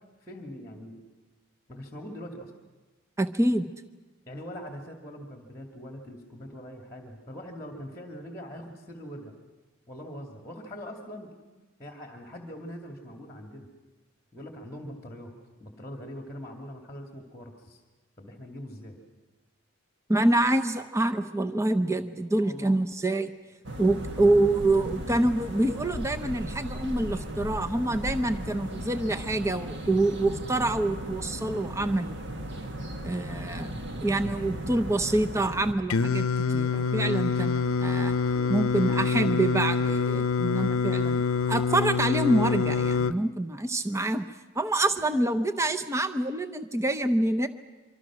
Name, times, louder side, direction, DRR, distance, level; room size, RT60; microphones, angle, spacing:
voice 1, 0.2-1.0 1.7-2.5 4.3-9.3 9.9-11.3 11.8-13.7 14.3-15.3 15.6-17.8 18.2-19.0 22.4-22.7 38.3-39.4 45.1-45.2, equal, 15° left, 3 dB, 2.3 m, -42 dB
voice 2, 3.2-3.7 20.1-23.3 23.8-32.2 33.0-33.7 34.0-36.2 36.5-38.2 38.5-41.2 41.5-44.3 44.6-47.5, right 2 dB, 15° right, 9 dB, 0.7 m, -26 dB
sound 1, 23.6-35.7, equal, 55° right, 1.7 m, -36 dB
Singing, 35.9-43.1, left 4 dB, 80° left, 0.7 m, -26 dB
26.0 x 24.5 x 6.2 m, 1.2 s
head